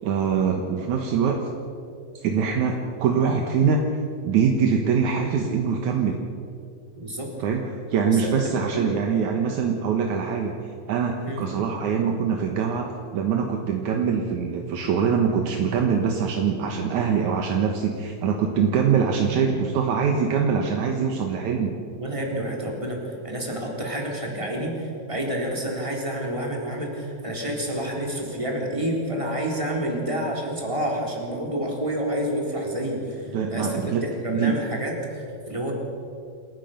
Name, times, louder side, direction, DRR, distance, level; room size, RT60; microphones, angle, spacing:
voice 1, 0.0-1.4 2.2-3.8 4.2-6.2 7.4-10.5 10.9-21.7 33.3-34.0 34.3-34.6, right 6 dB, 75° right, 2 dB, 2.7 m, -23 dB
voice 2, 7.0-7.3 8.1-9.0 11.2-11.4 21.9-23.0 23.2-35.7, right 1 dB, 10° right, -1 dB, 3.6 m, -29 dB
27.5 x 15.0 x 6.7 m, 2.5 s
omnidirectional pair, 3.5 m